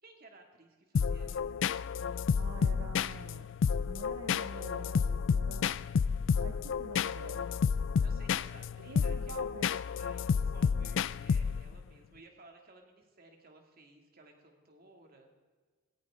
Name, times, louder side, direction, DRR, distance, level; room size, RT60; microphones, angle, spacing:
voice 1, 0.0-1.8 8.0-9.4 10.0-15.3, right 2 dB, 45° right, 2 dB, 2.6 m, -57 dB
sound 1, 0.9-11.8, left 6 dB, 60° left, 0.3 m, -31 dB
voice 2, 2.3-3.5 3.7-5.9 6.4-7.5 8.8-10.0, right 4 dB, 70° right, 7 dB, 0.8 m, -47 dB
19.0 x 17.0 x 3.8 m, 1.4 s
head